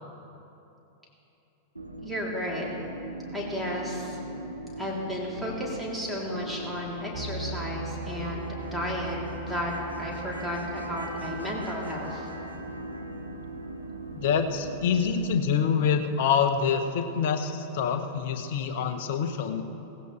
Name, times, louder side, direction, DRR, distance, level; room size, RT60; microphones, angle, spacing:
sound 1, 1.8-15.5, right 1 dB, 85° right, 0.9 m, -39 dB
voice 1, 2.0-2.7 3.3-4.2 4.8-9.7 10.0-12.3, equal, ahead, -5 dB, 3.4 m, -33 dB
sound 2, 7.1-15.3, right 3 dB, 35° right, 2.5 m, -43 dB
voice 2, 14.1-19.6, left 6 dB, 55° left, 7 dB, 1.1 m, -26 dB
18.0 x 16.0 x 3.4 m, 2.9 s
figure-of-eight pair, 90°, 0 cm